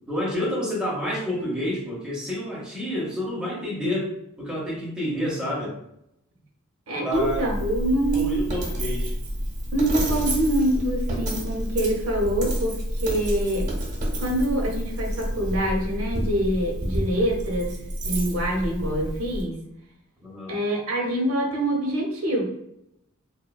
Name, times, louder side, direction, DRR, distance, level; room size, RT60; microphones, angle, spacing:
voice 1, 0.1-5.8 7.0-7.5 8.1-9.2 20.2-20.5, equal, 5° right, -5 dB, 0.6 m, -29 dB
voice 2, 6.9-8.4 9.7-13.7 14.2-17.8 18.0-19.6 20.5-22.4, right 1 dB, 70° right, 1 dB, 0.6 m, -25 dB
Coin (dropping), 7.1-19.4, equal, 35° right, 0.8 m, -29 dB
3.0 x 2.1 x 2.2 m, 0.79 s
head